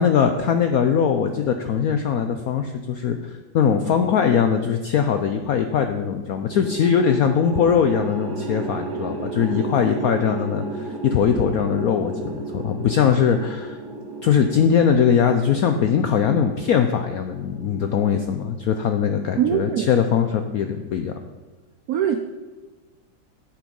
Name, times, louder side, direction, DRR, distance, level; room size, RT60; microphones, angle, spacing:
voice 1, 0.0-13.8 14.2-21.1, left 7 dB, 80° left, 7 dB, 0.8 m, -21 dB
sound 1, 6.5-18.8, right 3 dB, 60° right, 1.6 m, -34 dB
voice 2, 19.4-19.9 21.9-22.2, right 9 dB, 80° right, 8 dB, 0.8 m, -21 dB
9.3 x 7.5 x 5.3 m, 1.3 s
omnidirectional pair, 2.2 m